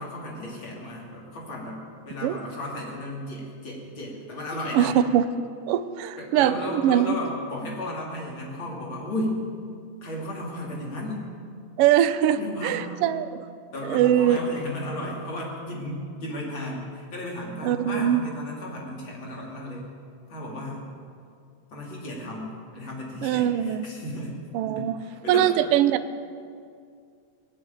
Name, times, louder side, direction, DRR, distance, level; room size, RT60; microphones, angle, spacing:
voice 1, 0.0-4.9 6.2-9.4 10.0-11.3 12.3-12.9 13.7-19.9 20.3-20.9 21.7-24.4 24.6-24.8 25.2-25.5, left 1 dB, 40° left, -3 dB, 3.5 m, -34 dB
voice 2, 4.7-5.3 5.7-7.1 11.8-13.3 13.8-14.4 17.6-18.2 23.2-23.9 24.5-25.0 25.3-26.0, right 11 dB, 85° right, 12 dB, 1.3 m, -22 dB
19.0 x 8.1 x 9.1 m, 2.3 s
omnidirectional pair, 3.3 m